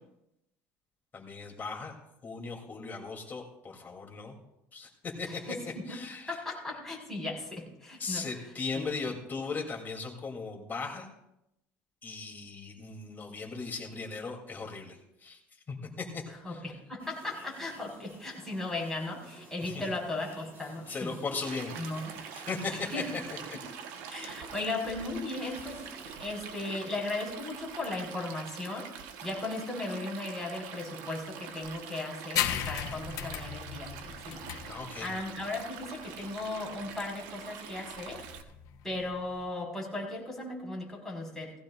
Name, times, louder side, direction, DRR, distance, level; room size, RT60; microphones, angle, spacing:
voice 1, 1.1-1.9 2.2-4.4 4.7-5.6 5.9-6.4 8.0-11.1 12.0-15.4 15.7-16.6 19.6-19.8 20.9-21.7 22.3-23.0 23.5-23.6 34.7-35.1, left 4 dB, 30° left, 1 dB, 3.2 m, -38 dB
voice 2, 5.3-6.0 6.3-8.3 8.7-8.9 16.4-21.2 21.8-22.1 22.9-23.0 24.1-28.9 29.2-34.4 35.0-38.3 38.8-41.5, left 2 dB, 5° left, -3 dB, 5.4 m, -37 dB
sound 1, 17.0-26.2, right 2 dB, 35° right, 5.7 m, -53 dB
Stream, 21.4-38.4, right 7 dB, 85° right, 1.2 m, -45 dB
sound 2, 32.4-39.5, left 10 dB, 65° left, 1.2 m, -37 dB
18.0 x 16.0 x 2.6 m, 0.84 s
cardioid pair, 120°, 7 cm